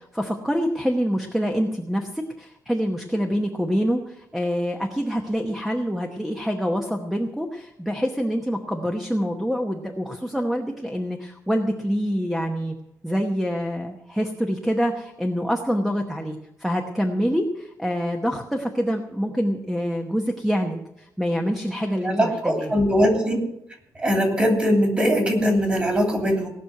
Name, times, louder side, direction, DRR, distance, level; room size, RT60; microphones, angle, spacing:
voice 1, 0.0-12.7 13.0-22.7, equal, ahead, 1 dB, 1.0 m, -26 dB
voice 2, 22.0-23.4 24.0-26.5, equal, 20° right, 2 dB, 2.9 m, -21 dB
18.0 x 6.3 x 9.2 m, 0.82 s
wide cardioid pair, 175°, 7 cm